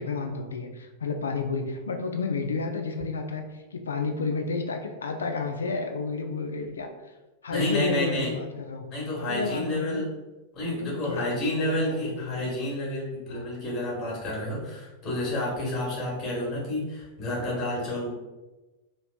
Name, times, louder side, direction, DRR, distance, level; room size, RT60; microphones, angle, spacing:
voice 1, 0.0-7.1 7.4-8.9 9.2-10.1 10.8-12.5 13.3-13.5, left 4 dB, 70° left, 5 dB, 0.4 m, -31 dB
voice 2, 7.5-8.3 8.9-10.1 10.5-18.1, left 1 dB, 30° left, -5 dB, 1.4 m, -30 dB
3.0 x 2.9 x 2.3 m, 1.1 s
figure-of-eight pair, 90°, 0 cm